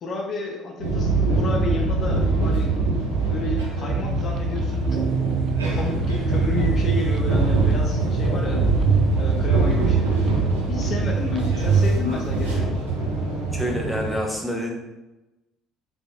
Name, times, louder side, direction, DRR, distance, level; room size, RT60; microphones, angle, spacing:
voice 1, 0.0-5.4 5.7-8.6 9.1-10.1 10.7-12.7, left 2 dB, 45° left, 0 dB, 0.6 m, -31 dB
sound 1, 0.8-14.2, right 3 dB, 85° right, 0.7 m, -23 dB
sound 2, 3.9-11.6, right 3 dB, 50° right, 0.4 m, -28 dB
voice 2, 13.5-14.7, equal, 5° left, -1 dB, 0.9 m, -27 dB
3.8 x 3.4 x 2.3 m, 1.0 s
hypercardioid pair, 55°, 0 cm